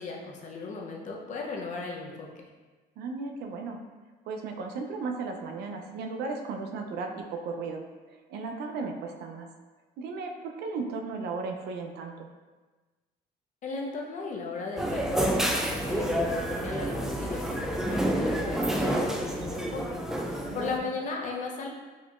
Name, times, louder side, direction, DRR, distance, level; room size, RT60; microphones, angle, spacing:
voice 1, 0.0-2.3 13.6-21.7, left 4 dB, 45° left, 0 dB, 0.6 m, -37 dB
voice 2, 3.0-3.8 4.3-9.5 10.0-12.3 20.4-20.9, right 4 dB, 75° right, 3 dB, 0.5 m, -36 dB
sound 1, 14.8-20.8, right 1 dB, 5° right, 0.3 m, -29 dB
4.2 x 2.8 x 2.4 m, 1.3 s
cardioid pair, 110°, 17 cm